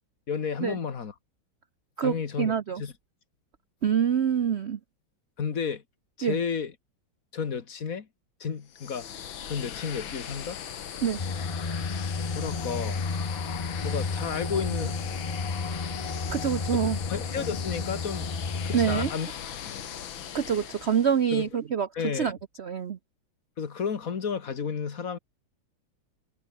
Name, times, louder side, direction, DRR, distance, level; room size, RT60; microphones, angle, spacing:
voice 1, 0.3-1.1 2.0-2.9 5.4-5.8 6.2-6.7 7.3-8.1 8.4-9.1 9.4-10.6 12.3-13.0 13.8-15.0 17.1-18.3 18.6-19.3 19.6-19.9 21.3-21.5 21.9-22.3 23.6-25.2, left 6 dB, 45° left, 2.0 m, -32 dB
voice 2, 2.0-2.8 3.8-4.8 6.2-6.4 11.0-11.2 16.3-17.0 18.7-19.1 20.3-21.9 22.1-23.0, right 8 dB, 65° right, 0.6 m, -26 dB
sound 1, 8.7-21.4, left 9 dB, 75° left, 2.1 m, -39 dB
sound 2, 11.2-19.1, left 4 dB, 25° left, 0.8 m, -32 dB
omnidirectional pair, 2.2 m